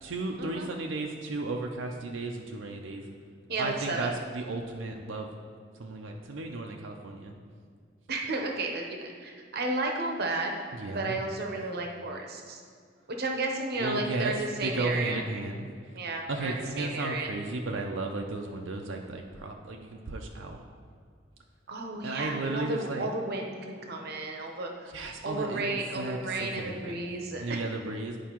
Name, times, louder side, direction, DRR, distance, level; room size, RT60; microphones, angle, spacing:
voice 1, 0.0-3.1 3.6-5.3 5.8-7.3 10.7-11.2 13.8-15.7 16.3-20.6 22.0-23.1 24.9-27.1 27.4-28.2, right 2 dB, 90° right, 1 dB, 0.5 m, -34 dB
voice 2, 3.5-4.1 8.1-10.5 10.9-12.6 13.2-15.2 15.9-17.3 21.7-24.9 25.2-27.6, right 2 dB, 55° right, 2 dB, 0.8 m, -33 dB
10.0 x 4.6 x 3.0 m, 2.1 s
head